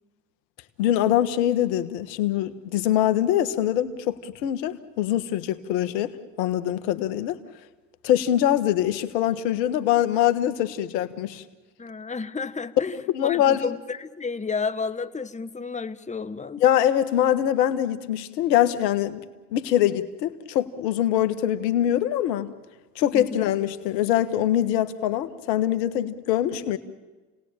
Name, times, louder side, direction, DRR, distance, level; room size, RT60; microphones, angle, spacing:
voice 1, 0.8-6.1 6.4-7.4 8.0-11.4 13.1-13.7 16.6-22.5 22.9-26.8, left 11 dB, 85° left, 12 dB, 1.6 m, -23 dB
voice 2, 11.8-16.6 23.1-23.4, left 4 dB, 15° left, 10 dB, 1.2 m, -32 dB
30.0 x 19.0 x 9.0 m, 1.3 s
hypercardioid pair, 70°, 48 cm